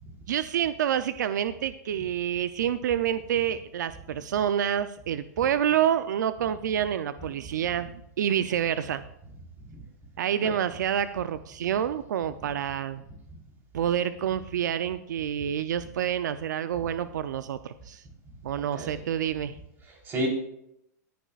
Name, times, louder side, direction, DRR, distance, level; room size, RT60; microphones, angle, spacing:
voice 1, 0.3-9.0 10.2-13.0 13.7-18.0 18.4-19.6, right 9 dB, 80° right, 12 dB, 0.6 m, -28 dB
voice 2, 18.5-19.0 19.8-20.3, equal, 20° right, -1 dB, 4.0 m, -33 dB
18.5 x 10.5 x 2.4 m, 0.78 s
supercardioid pair, 150°, 10 cm